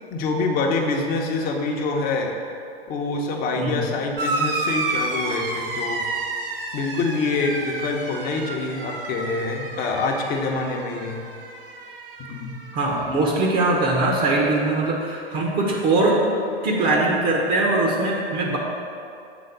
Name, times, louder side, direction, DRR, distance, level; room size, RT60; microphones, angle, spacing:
voice 1, 0.1-2.3 2.9-6.1 6.7-11.2 12.2-12.5, left 3 dB, 30° left, 1 dB, 1.0 m, -25 dB
sound 1, 4.2-13.2 13.5-14.2 15.3-15.4, right 3 dB, 60° right, 1.0 m, -31 dB
voice 2, 12.7-16.3 16.6-18.6, right 2 dB, 30° right, -2 dB, 1.0 m, -21 dB
7.2 x 3.9 x 6.6 m, 2.5 s
figure-of-eight pair, 100°, 31 cm